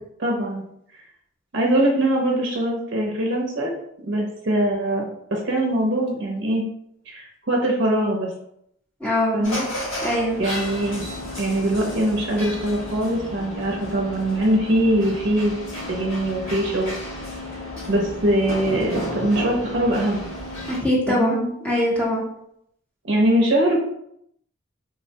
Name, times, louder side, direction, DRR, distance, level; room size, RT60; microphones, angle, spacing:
voice 1, 0.2-0.6 0.9-1.0 1.5-3.7 4.0-6.6 7.1-8.3 9.3-9.7 10.4-11.1 11.4-16.9 17.9-20.2 21.1-21.4 23.0-23.8, right 1 dB, 60° right, -1 dB, 0.5 m, -22 dB
voice 2, 9.0-9.5 10.0-10.4 20.7-22.3, left 1 dB, 5° left, -5 dB, 0.6 m, -22 dB
sound 1, 9.4-20.8, left 1 dB, 85° left, 1.3 m, -32 dB
3.4 x 2.1 x 2.7 m, 0.73 s
head